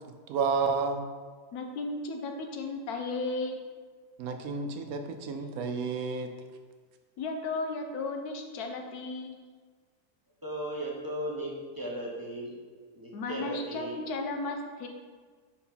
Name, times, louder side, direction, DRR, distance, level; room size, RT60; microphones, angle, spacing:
voice 1, 0.3-1.1 4.2-6.3, right 4 dB, 75° right, 6 dB, 1.0 m, -30 dB
voice 2, 1.5-3.6 7.2-9.4 13.1-14.9, left 3 dB, 85° left, 4 dB, 1.3 m, -34 dB
voice 3, 10.4-12.5 12.9-14.0, right 1 dB, 20° right, -4 dB, 0.7 m, -36 dB
4.6 x 4.3 x 5.5 m, 1.5 s
omnidirectional pair, 1.6 m